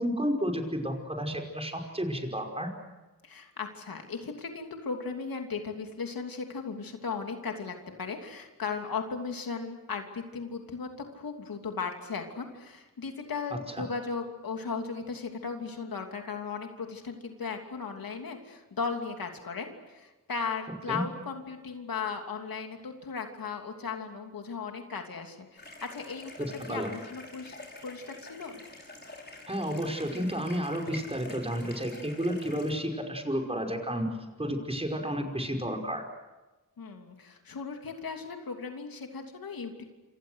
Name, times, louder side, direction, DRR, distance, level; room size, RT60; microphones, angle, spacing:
voice 1, 0.0-2.7 20.9-21.0 26.4-26.9 29.5-34.1 34.4-36.0, equal, 15° right, 3 dB, 5.4 m, -31 dB
voice 2, 3.2-26.3 26.7-27.5 27.8-28.6 36.8-39.8, left 5 dB, 85° left, 4 dB, 3.1 m, -37 dB
sound 1, 25.6-32.7, left 2 dB, 30° left, 5.9 m, -47 dB
27.5 x 26.5 x 6.5 m, 1.1 s
wide cardioid pair, 80°, 34 cm